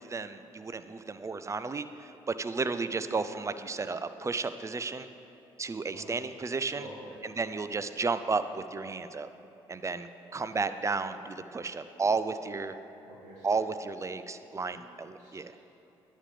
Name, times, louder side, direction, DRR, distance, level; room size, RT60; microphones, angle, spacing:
voice 1, 0.0-5.1 5.6-6.9 7.2-9.3 9.7-12.8 13.4-15.5, right 4 dB, 25° right, 11 dB, 0.4 m, -33 dB
voice 2, 6.7-7.1 10.5-10.7 13.0-13.6 14.7-14.8 15.2-15.6, right 2 dB, 70° right, -9 dB, 1.8 m, -49 dB
9.9 x 8.4 x 3.3 m, 2.8 s
hypercardioid pair, 50°, 13 cm